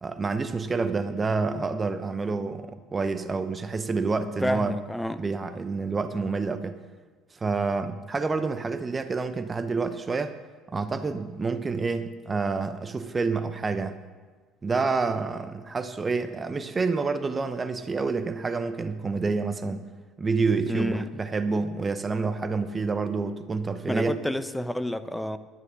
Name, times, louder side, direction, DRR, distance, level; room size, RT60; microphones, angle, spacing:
voice 1, 0.0-4.7 5.2-6.8 7.3-10.3 10.7-14.0 14.6-19.8 20.2-24.2, right 4 dB, 25° right, 0.8 m, -28 dB
voice 2, 4.4-5.2 20.7-21.1 23.9-25.4, left 1 dB, 5° left, 0.9 m, -29 dB
11.0 x 9.5 x 6.1 m
figure-of-eight pair, 55°, 0 cm